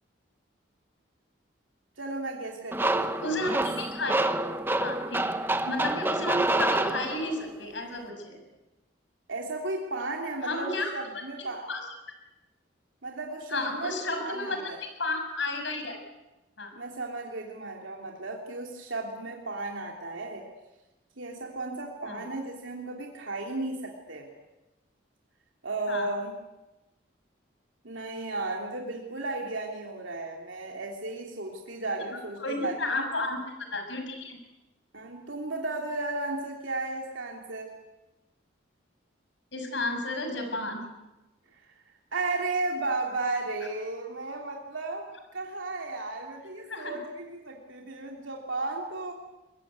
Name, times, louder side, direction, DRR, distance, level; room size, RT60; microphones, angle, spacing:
voice 1, 2.0-3.6 9.3-11.7 13.0-14.8 16.7-20.5 21.2-24.3 25.6-26.3 27.8-33.0 34.9-37.7 41.5-41.6 42.1-49.1, right 2 dB, 80° right, 1 dB, 3.1 m, -34 dB
sound 1, 2.7-7.5, right 2 dB, 10° right, 1.0 m, -28 dB
voice 2, 3.2-4.2 4.8-5.3 5.6-8.4 10.4-10.9 11.7-11.8 13.5-14.7 15.0-16.0 16.6-16.7 22.0-22.3 25.9-26.1 32.4-33.4 33.7-34.4 39.5-40.8 46.7-47.0, left 2 dB, 70° left, 5 dB, 6.5 m, -32 dB
23.0 x 22.0 x 9.5 m, 1.0 s
head